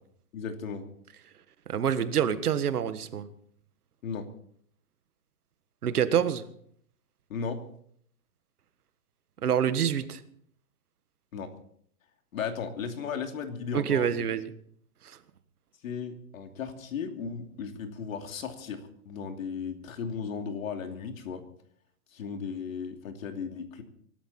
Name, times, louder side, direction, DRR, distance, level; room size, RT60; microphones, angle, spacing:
voice 1, 0.3-0.8 4.0-4.3 7.3-7.6 11.3-11.5 12.3-14.3 15.8-21.4 22.1-23.8, left 6 dB, 60° left, 5 dB, 2.9 m, -36 dB
voice 2, 1.7-3.3 5.8-6.4 9.4-10.2 13.7-14.5 15.0-15.2, right 8 dB, 80° right, 12 dB, 1.6 m, -26 dB
24.0 x 13.0 x 4.3 m, 0.64 s
hypercardioid pair, 155°, 45 cm